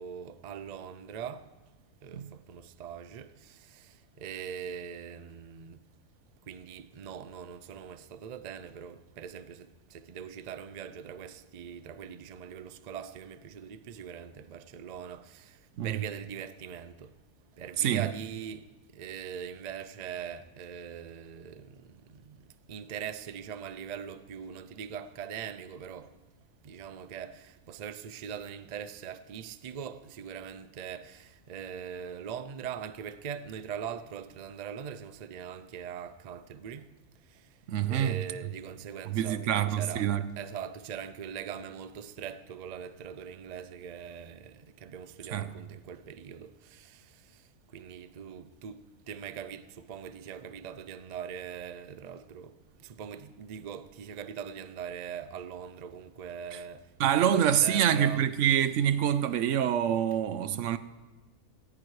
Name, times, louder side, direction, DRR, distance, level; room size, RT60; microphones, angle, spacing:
voice 1, 0.0-1.4 2.0-3.3 4.2-5.8 6.5-15.4 15.8-17.1 17.6-18.7 18.9-21.7 22.3-22.4 22.7-26.1 26.6-36.9 37.9-40.1 40.4-44.5 44.8-46.9 47.7-48.8 49.1-52.5 52.8-58.2, right 8 dB, 90° right, 0.3 m, -41 dB
voice 2, 17.8-18.1 37.7-38.2 39.1-40.2 45.3-45.5 56.5-56.6 57.0-60.8, right 9 dB, 65° right, 0.9 m, -26 dB
18.0 x 16.0 x 3.2 m
omnidirectional pair, 1.5 m